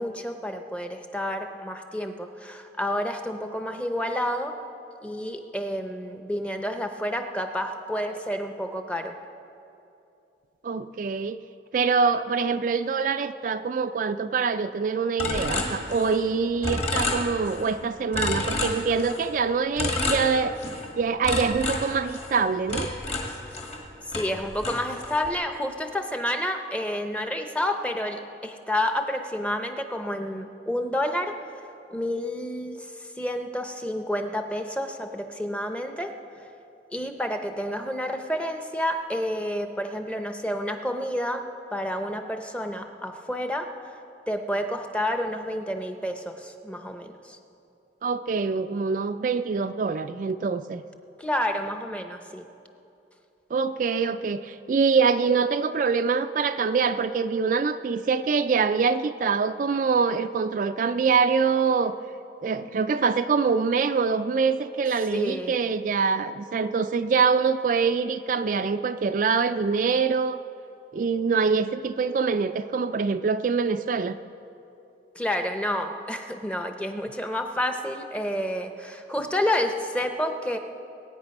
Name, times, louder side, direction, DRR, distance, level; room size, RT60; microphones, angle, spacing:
voice 1, 0.0-4.6 5.0-9.2 24.1-31.4 31.9-36.4 36.9-43.7 44.3-47.4 51.2-52.4 65.1-65.6 75.1-80.6, left 1 dB, 5° left, 6 dB, 0.7 m, -29 dB
voice 2, 10.6-11.4 11.7-20.6 21.0-22.9 48.0-50.8 53.5-61.9 62.4-70.4 70.9-74.2, right 5 dB, 45° right, 9 dB, 0.3 m, -24 dB
sound 1, 15.2-16.3 16.6-17.7 18.1-19.3 19.8-20.9 21.2-23.8 24.1-25.3, left 2 dB, 35° left, 1.7 m, -30 dB
22.0 x 9.0 x 5.3 m, 2.8 s
head